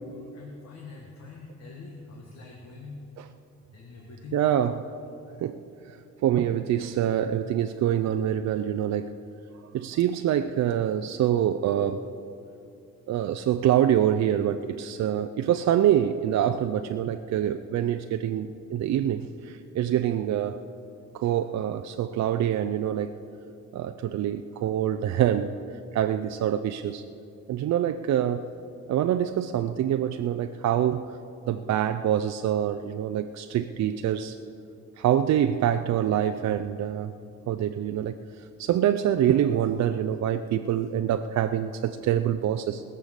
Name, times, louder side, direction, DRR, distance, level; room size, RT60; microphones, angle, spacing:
voice 1, 0.3-3.1 3.7-4.5, left 3 dB, 60° left, 0 dB, 1.8 m, -44 dB
voice 2, 4.3-4.8 5.4-5.6 5.9-9.1 9.7-12.0 13.1-20.6 21.1-23.2 23.7-25.6 25.9-27.0 27.5-28.5 28.9-31.1 31.5-34.4 35.0-37.1 37.5-38.2 38.6-42.8, right 10 dB, 60° right, 8 dB, 0.5 m, -25 dB
20.0 x 6.9 x 6.5 m, 2.6 s
cardioid pair, 90°, 30 cm